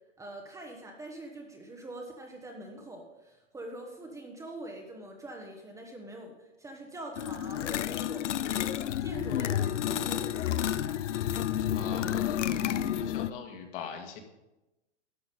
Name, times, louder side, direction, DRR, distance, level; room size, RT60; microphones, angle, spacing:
voice 1, 0.2-8.3 9.0-11.0, right 1 dB, 10° right, 1 dB, 1.0 m, -44 dB
sound 1, 7.2-13.3, left 11 dB, 80° left, 0.6 m, -30 dB
voice 2, 11.7-14.2, left 7 dB, 50° left, 3 dB, 2.0 m, -43 dB
11.5 x 7.1 x 5.2 m, 0.99 s
hypercardioid pair, 130°, 36 cm